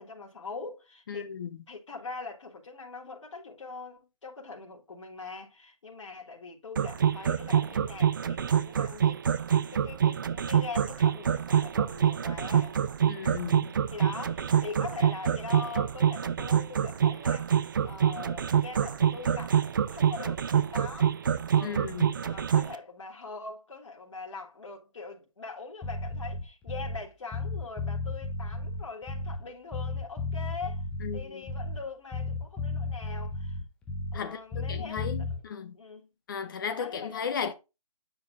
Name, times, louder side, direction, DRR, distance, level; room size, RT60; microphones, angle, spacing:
voice 1, 0.0-1.4 1.7-9.2 9.7-12.8 13.9-19.6 19.9-21.2 21.5-21.9 22.2-30.8 31.1-33.6 34.1-36.1 36.6-37.3, left 4 dB, 55° left, 3.8 m, -42 dB
voice 2, 1.1-1.5 13.1-13.7 21.6-22.1 31.0-31.4 34.1-35.7 36.3-37.5, left 6 dB, 35° left, 1.4 m, -35 dB
sound 1, 6.8-22.7, right 8 dB, 35° right, 0.5 m, -25 dB
Bass guitar, 25.8-27.1 27.3-29.5 29.7-34.3 34.5-35.4, left 2 dB, 5° left, 0.8 m, -34 dB
9.3 x 6.2 x 2.6 m
hypercardioid pair, 160°, 18 cm